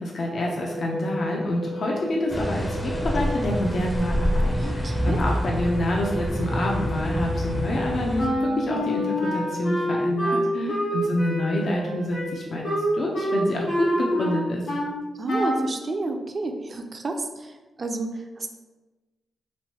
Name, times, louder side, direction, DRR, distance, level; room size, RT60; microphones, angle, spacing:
voice 1, 0.0-12.7 12.9-14.6, left 1 dB, 65° left, -1 dB, 0.5 m, -27 dB
Wind instrument woodwind instrument, 0.6-9.9, equal, 80° right, 0.8 m, -35 dB
sound 1, 2.3-8.3, equal, 15° left, 0.5 m, -27 dB
voice 2, 4.5-5.2 10.3-10.8 15.1-18.5, right 2 dB, 45° right, 5 dB, 0.4 m, -31 dB
Wind instrument woodwind instrument 2, 8.2-15.0 15.3-15.7, equal, 80° left, 1.2 m, -26 dB
3.1 x 2.5 x 2.8 m, 1.2 s
cardioid pair, 60°, 0 cm